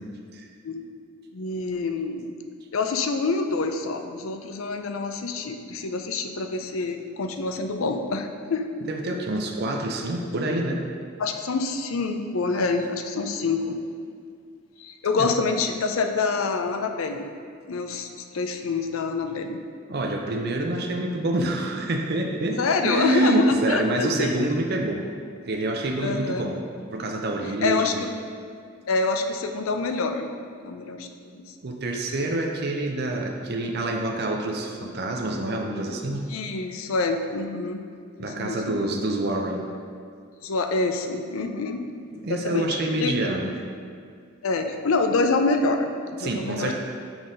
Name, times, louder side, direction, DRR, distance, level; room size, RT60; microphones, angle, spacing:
voice 1, 1.3-2.3 2.7-8.6 11.2-13.8 14.8-17.3 17.7-19.6 22.6-24.5 26.0-26.5 27.6-28.1 28.9-30.3 30.6-31.4 36.3-37.8 38.4-38.8 40.4-41.8 42.3-43.1 44.4-46.7, left 3 dB, 85° left, 6 dB, 0.5 m, -26 dB
voice 2, 8.9-10.9 15.2-15.3 19.9-25.1 25.5-26.6 26.9-28.0 31.6-36.3 38.2-39.6 42.1-43.5 46.2-46.7, right 1 dB, 50° right, 2 dB, 0.5 m, -27 dB
6.1 x 3.9 x 5.0 m, 2.2 s
head